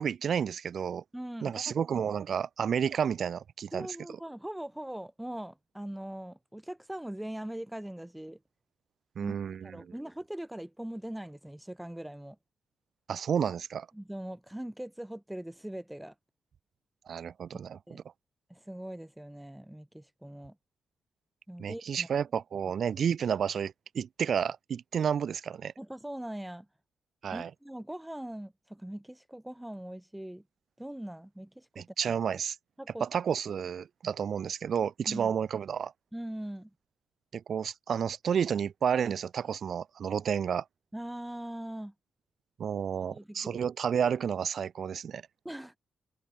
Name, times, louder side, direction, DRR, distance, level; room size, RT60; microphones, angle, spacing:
voice 1, 0.0-1.0 1.4-3.9 9.2-9.9 13.1-13.9 17.1-18.0 21.6-25.7 27.2-27.5 31.8-32.6 33.0-35.9 37.3-40.6 42.6-45.2, right 7 dB, 60° right, 2.5 m, -31 dB
voice 2, 1.1-1.8 3.7-8.4 9.2-9.4 9.6-12.4 13.9-16.1 17.9-18.0 18.5-20.5 21.5-22.1 25.8-26.7 27.3-30.4 30.8-32.2 32.8-33.1 35.0-35.3 36.1-36.7 40.9-41.9 43.1-43.6 45.4-45.8, right 1 dB, 5° right, 3.0 m, -41 dB
cardioid pair, 65°, 0 cm